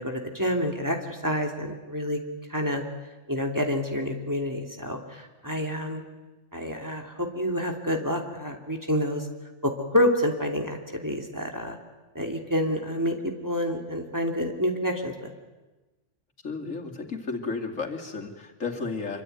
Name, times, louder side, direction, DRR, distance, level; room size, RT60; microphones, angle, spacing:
voice 1, 0.0-2.2 2.5-2.8 3.3-6.0 6.5-9.3 9.6-11.8 12.1-13.2 13.4-15.3, equal, 15° right, 2 dB, 2.9 m, -28 dB
voice 2, 16.4-19.2, left 4 dB, 85° left, 2 dB, 3.0 m, -33 dB
26.5 x 24.0 x 9.4 m, 1.1 s
omnidirectional pair, 1.3 m